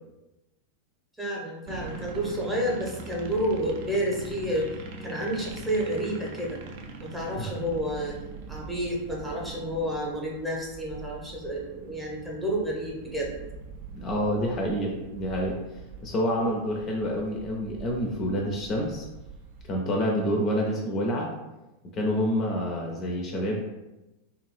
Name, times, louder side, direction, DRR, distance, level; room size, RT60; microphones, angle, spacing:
voice 1, 1.2-4.7 5.0-6.6 7.0-8.2 8.5-13.3, equal, 5° right, -3 dB, 0.8 m, -30 dB
sound 1, 1.7-19.7, right 4 dB, 50° right, 0.4 m, -42 dB
voice 2, 13.9-15.6 16.0-19.0 19.7-21.3 21.9-23.6, equal, 30° left, 0 dB, 0.4 m, -28 dB
2.5 x 2.4 x 3.2 m, 1.0 s
figure-of-eight pair, 90°, 0 cm